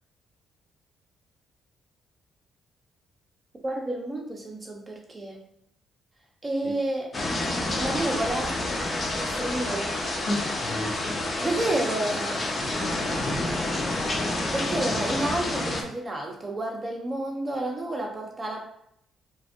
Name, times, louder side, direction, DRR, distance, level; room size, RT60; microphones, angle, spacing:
voice 1, 3.6-5.4 6.4-7.1 7.8-10.0 11.4-12.4 14.5-18.6, right 1 dB, 25° right, 0 dB, 1.0 m, -30 dB
sound 1, 7.1-15.8, left 2 dB, 35° left, 0.9 m, -29 dB
voice 2, 10.3-11.4 12.1-12.2 12.6-12.9 13.2-13.4 14.6-15.0, left 2 dB, 65° left, 0 dB, 1.1 m, -34 dB
4.5 x 3.3 x 2.7 m, 0.72 s
cardioid pair, 90°, 0 cm